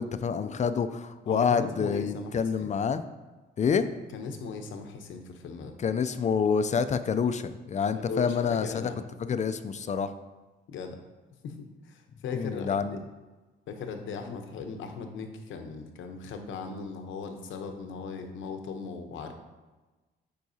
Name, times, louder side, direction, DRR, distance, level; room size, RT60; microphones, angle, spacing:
voice 1, 0.0-3.0 3.6-3.9 5.8-8.9 9.2-10.1 12.3-13.0 14.3-14.4, left 6 dB, 35° left, 11 dB, 0.4 m, -27 dB
voice 2, 1.2-2.7 3.8-5.8 8.1-9.0 9.3-9.4 10.7-11.0 11.4-13.0 13.7-19.3, left 5 dB, 80° left, 6 dB, 0.8 m, -38 dB
9.1 x 4.6 x 2.8 m, 1.2 s
cardioid pair, 90°, 20 cm